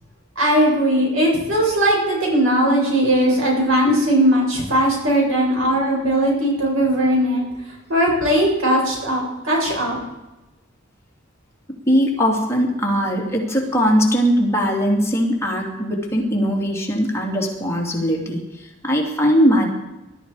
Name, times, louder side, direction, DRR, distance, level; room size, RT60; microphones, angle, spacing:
voice 1, 0.4-7.4 7.9-10.0, equal, 80° right, -2 dB, 7.0 m, -18 dB
voice 2, 11.7-19.7, equal, 15° left, -1 dB, 2.9 m, -20 dB
20.0 x 12.5 x 5.0 m, 1.0 s
head